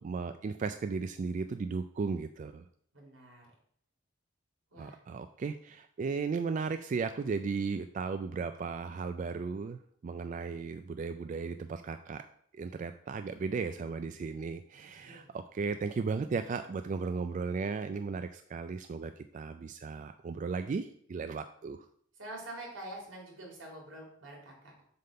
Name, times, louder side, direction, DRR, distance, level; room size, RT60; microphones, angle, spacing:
voice 1, 0.0-2.7 4.8-12.2 12.5-21.9, right 5 dB, 40° right, 9 dB, 0.3 m, -35 dB
voice 2, 2.9-3.5 4.7-5.0 14.8-15.3 22.2-24.7, right 1 dB, 85° right, -2 dB, 2.8 m, -46 dB
7.6 x 3.6 x 5.5 m, 0.63 s
head